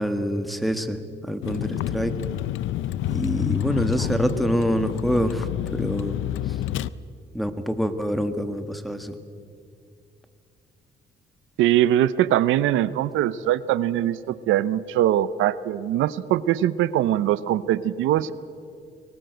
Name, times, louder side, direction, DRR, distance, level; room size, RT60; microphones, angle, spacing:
voice 1, 0.0-2.2 3.1-6.2 6.5-6.6 7.3-9.2, equal, ahead, 8 dB, 1.7 m, -26 dB
Vehicle, 1.4-6.9, left 13 dB, 80° left, 0.6 m, -28 dB
voice 2, 11.6-18.3, right 12 dB, 90° right, 16 dB, 0.7 m, -22 dB
22.0 x 18.5 x 7.9 m, 2.3 s
cardioid pair, 90°, 20 cm